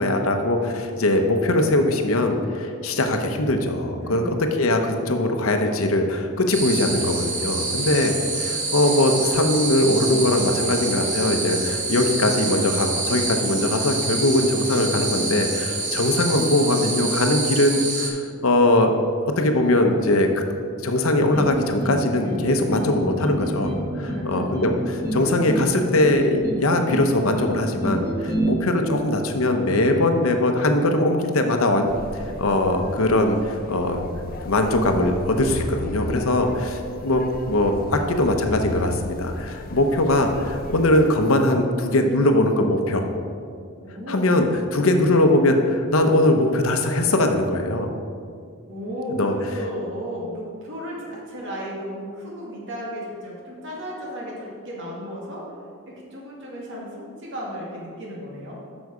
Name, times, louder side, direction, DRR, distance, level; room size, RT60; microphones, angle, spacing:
voice 1, 0.0-4.2 4.6-18.9 19.4-20.4 20.8-23.7 24.3-34.0 34.4-37.2 37.5-43.0 44.1-44.5 44.7-47.9 49.1-49.3, left 1 dB, 70° left, 5 dB, 0.8 m, -21 dB
voice 2, 4.0-4.4 23.9-24.6 43.8-44.3 48.7-55.5 56.1-58.6, equal, 60° right, -4 dB, 2.1 m, -34 dB
sound 1, 6.5-18.1, right 3 dB, 35° right, 1.3 m, -27 dB
sound 2, 21.3-22.0 22.2-22.9 23.2-23.8 24.1-24.7 25.0-25.6 26.0-26.6 26.9-27.5 27.8-28.5, right 1 dB, 15° right, 2.1 m, -27 dB
sound 3, 31.9-41.3, left 3 dB, 45° left, 0.5 m, -35 dB
8.1 x 6.2 x 4.9 m, 2.3 s
head